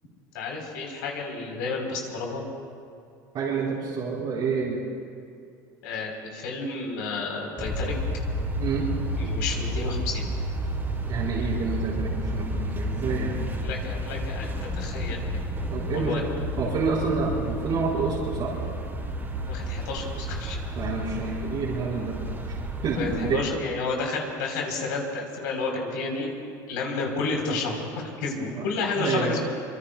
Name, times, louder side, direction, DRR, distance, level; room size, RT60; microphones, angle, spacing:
voice 1, 0.3-2.4 5.8-8.0 9.2-10.3 13.6-15.2 15.9-16.2 19.5-20.6 22.9-26.3 26.7-29.4, left 3 dB, 80° left, 0 dB, 3.8 m, -31 dB
voice 2, 3.3-4.8 8.6-8.9 11.1-13.4 15.7-16.2 16.6-18.5 20.8-22.2 22.8-23.4 28.5-28.6 28.9-29.4, right 5 dB, 50° right, -6 dB, 3.9 m, -28 dB
sound 1, 7.6-23.4, equal, 20° right, 3.3 m, -31 dB
25.0 x 24.5 x 2.3 m, 2.4 s
hypercardioid pair, 90°, 10 cm